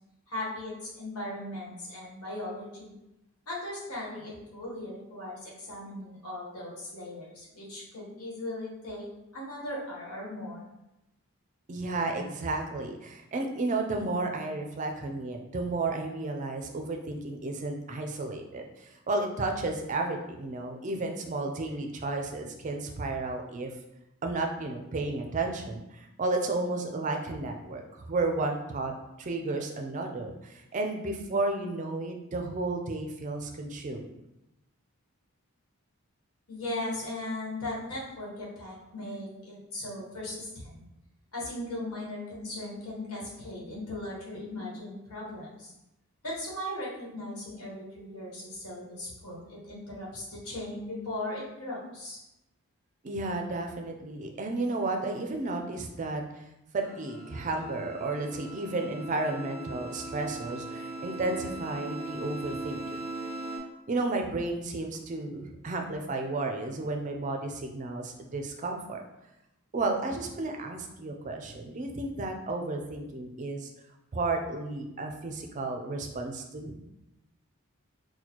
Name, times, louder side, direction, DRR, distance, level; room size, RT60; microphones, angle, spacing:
voice 1, 0.3-2.9 3.5-9.0 9.3-10.7 36.5-40.8 41.3-45.7 46.2-52.2, left 1 dB, 90° left, -5 dB, 1.2 m, -38 dB
voice 2, 11.7-23.7 24.2-28.9 29.2-34.0 53.0-56.2 56.7-62.8 63.9-69.0 69.7-73.7 74.1-76.8, right 2 dB, 35° right, 3 dB, 0.4 m, -32 dB
sound 1, 56.8-63.6, right 2 dB, 30° left, 1.1 m, -39 dB
4.2 x 2.2 x 2.9 m, 0.90 s
head